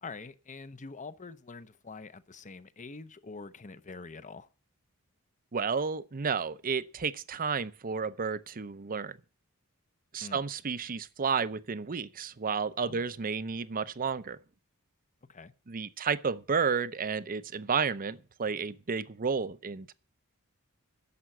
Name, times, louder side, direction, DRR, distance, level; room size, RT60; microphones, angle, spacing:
voice 1, 0.0-4.5 10.2-10.4 12.8-13.1 15.3-15.5, left 4 dB, 35° left, 0.8 m, -45 dB
voice 2, 5.5-9.2 10.1-14.4 15.7-19.9, right 5 dB, 40° right, 0.7 m, -32 dB
11.0 x 7.0 x 9.0 m
head